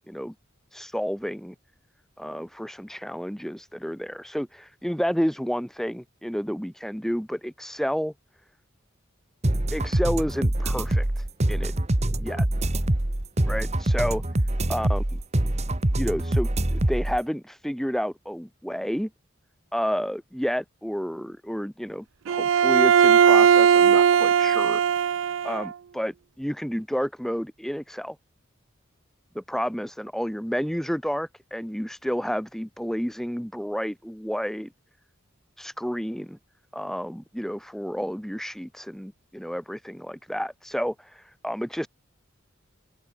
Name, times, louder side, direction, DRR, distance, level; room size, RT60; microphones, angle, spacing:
voice 1, 0.7-1.6 2.2-8.1 9.7-11.7 12.2-12.5 13.5-14.2 14.7-15.0 16.0-19.1 19.7-24.8 25.4-28.2 29.3-34.7 35.6-36.4 36.7-41.9, equal, ahead, 2.1 m, -30 dB
sound 1, 9.4-17.2, right 1 dB, 35° right, 1.4 m, -24 dB
Bowed string instrument, 22.3-25.7, right 7 dB, 70° right, 0.4 m, -18 dB
open air
head